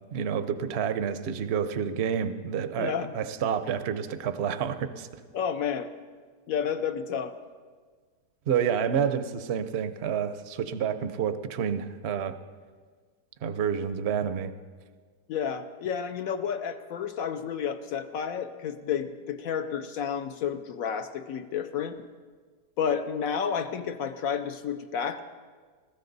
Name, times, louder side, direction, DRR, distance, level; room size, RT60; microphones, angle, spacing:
voice 1, 0.1-5.1 8.5-12.4 13.4-14.5, right 7 dB, 60° right, 11 dB, 0.7 m, -29 dB
voice 2, 2.8-3.1 5.3-5.9 6.5-7.4 15.3-22.1 22.8-25.2, left 7 dB, 65° left, 9 dB, 0.9 m, -31 dB
20.0 x 14.5 x 4.0 m, 1.5 s
omnidirectional pair, 1.9 m